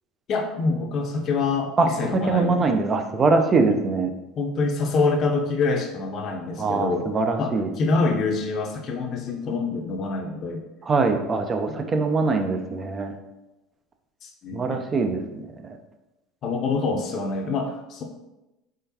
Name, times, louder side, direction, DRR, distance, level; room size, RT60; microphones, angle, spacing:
voice 1, 0.3-2.7 3.7-3.8 4.4-7.1 7.4-10.6 14.2-14.8 16.4-18.0, left 3 dB, 50° left, 3 dB, 0.6 m, -26 dB
voice 2, 2.3-4.1 6.6-7.7 10.9-13.1 14.5-15.5, right 4 dB, 35° right, 6 dB, 0.5 m, -22 dB
3.7 x 3.3 x 2.8 m, 0.98 s
hypercardioid pair, 80°, 0 cm